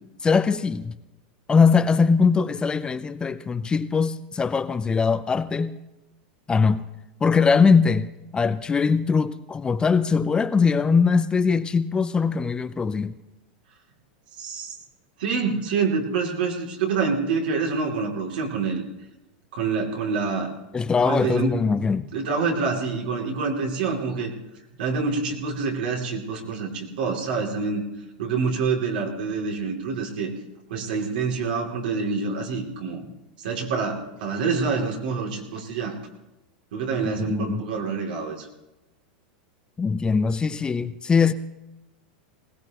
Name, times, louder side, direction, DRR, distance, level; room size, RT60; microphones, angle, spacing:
voice 1, 0.2-1.0 1.5-5.8 6.5-6.8 7.2-13.1 20.7-22.1 37.0-37.6 39.8-41.3, left 5 dB, 15° left, 0.6 m, -21 dB
voice 2, 14.4-14.7 15.2-18.9 19.5-20.5 21.0-21.6 22.1-24.3 24.8-27.8 28.2-30.3 30.7-33.1 33.4-35.9 36.7-38.5, right 4 dB, 75° right, 2.9 m, -26 dB
20.0 x 17.5 x 3.0 m
hypercardioid pair, 115°, 5 cm